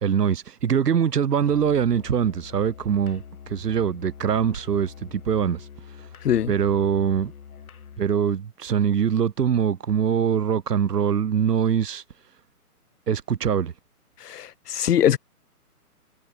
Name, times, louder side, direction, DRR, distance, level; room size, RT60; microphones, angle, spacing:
voice 1, 0.0-3.2 3.5-5.6 6.5-7.3 8.0-12.0 13.1-13.7, right 8 dB, 90° right, 1.5 m, -23 dB
Musical instrument, 1.4-8.2, left 7 dB, 65° left, 5.4 m, -44 dB
voice 2, 14.2-15.2, left 10 dB, 80° left, 0.9 m, -22 dB
hypercardioid pair, 170°, 46 cm